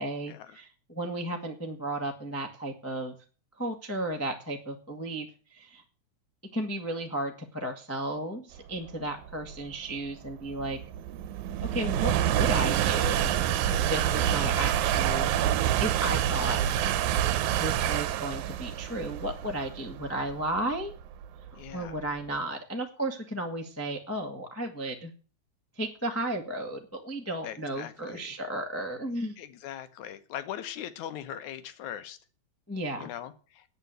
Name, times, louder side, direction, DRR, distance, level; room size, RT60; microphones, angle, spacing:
voice 1, 0.0-3.1 3.6-5.8 6.5-10.8 11.6-13.4 13.7-16.8 17.5-20.9 21.7-25.1 25.8-29.4 32.7-33.1, right 1 dB, 15° left, 3 dB, 0.6 m, -34 dB
sound 1, 8.9-22.2, right 11 dB, 90° right, 2.2 m, -27 dB
voice 2, 14.2-14.5 21.5-22.0 27.4-28.3 29.4-32.2 33.0-33.7, left 10 dB, 85° left, 12 dB, 2.4 m, -40 dB
8.9 x 8.3 x 8.0 m, 0.38 s
omnidirectional pair, 3.3 m